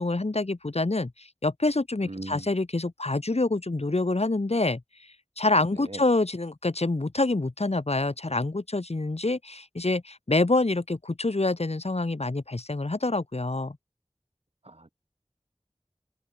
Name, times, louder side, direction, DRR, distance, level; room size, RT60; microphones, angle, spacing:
voice 1, 0.0-4.8 5.4-13.8, left 2 dB, 85° left, 6.6 m, -26 dB
voice 2, 2.0-2.5 5.8-6.0 14.7-14.9, right 2 dB, 70° right, 6.2 m, -39 dB
wide cardioid pair, 40°, 10 cm